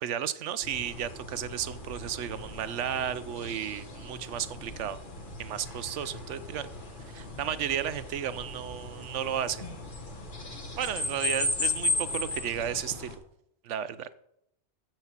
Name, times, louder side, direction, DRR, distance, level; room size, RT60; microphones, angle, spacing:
voice 1, 0.0-5.0 5.4-6.7 7.1-9.7 10.8-13.1 13.6-14.1, right 9 dB, 80° right, 15 dB, 1.0 m, -33 dB
sound 1, 0.6-13.2, left 2 dB, 45° left, 1.6 m, -36 dB
7.6 x 7.4 x 7.3 m, 0.76 s
omnidirectional pair, 1.2 m